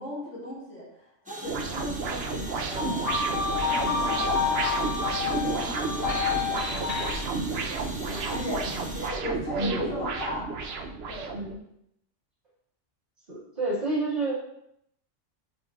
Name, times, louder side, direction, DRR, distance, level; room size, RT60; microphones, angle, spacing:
voice 1, 0.0-3.1 3.6-6.9 7.5-11.4, left 1 dB, 70° left, -9 dB, 2.3 m, -37 dB
sound 1, 1.3-9.1, right 1 dB, 5° right, 1.0 m, -40 dB
sound 2, 1.4-11.5, right 4 dB, 60° right, 0.9 m, -32 dB
sound 3, 2.8-7.1, left 5 dB, 30° left, 2.2 m, -29 dB
voice 2, 9.6-9.9 11.3-11.6 13.3-14.4, right 2 dB, 45° right, -8 dB, 1.7 m, -30 dB
10.5 x 5.3 x 2.4 m, 0.76 s
omnidirectional pair, 1.3 m